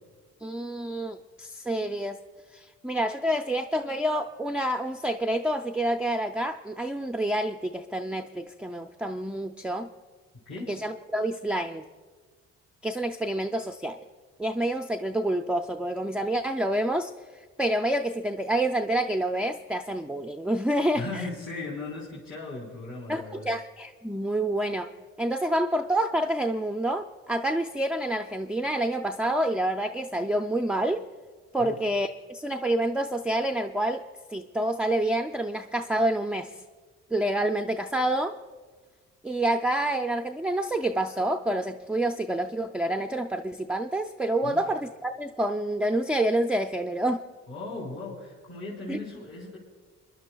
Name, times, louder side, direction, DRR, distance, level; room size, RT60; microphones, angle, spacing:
voice 1, 0.4-2.2 2.5-9.9 10.7-11.8 12.8-14.0 14.4-17.1 17.6-21.2 23.1-24.9 25.2-31.1 31.5-34.0 34.3-36.5 37.1-38.4 39.2-47.2 48.9-49.0, right 1 dB, 5° right, 5 dB, 0.4 m, -28 dB
voice 2, 20.9-23.5 31.6-31.9 44.4-44.6 47.5-49.6, left 2 dB, 50° left, -7 dB, 3.8 m, -37 dB
29.5 x 11.0 x 2.3 m, 1.5 s
cardioid pair, 90°, 30 cm